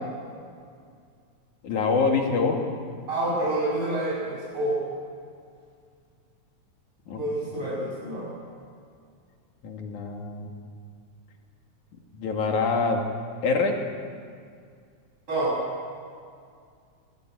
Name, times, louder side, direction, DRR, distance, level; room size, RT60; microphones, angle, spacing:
voice 1, 1.6-2.6 7.1-7.2 9.6-10.5 12.2-13.1 13.4-13.9, left 4 dB, 80° left, 2 dB, 3.8 m, -25 dB
voice 2, 3.1-4.7 7.2-8.3 15.3-15.5, right 1 dB, 45° right, -7 dB, 8.8 m, -28 dB
24.5 x 19.0 x 9.4 m, 2.2 s
omnidirectional pair, 3.4 m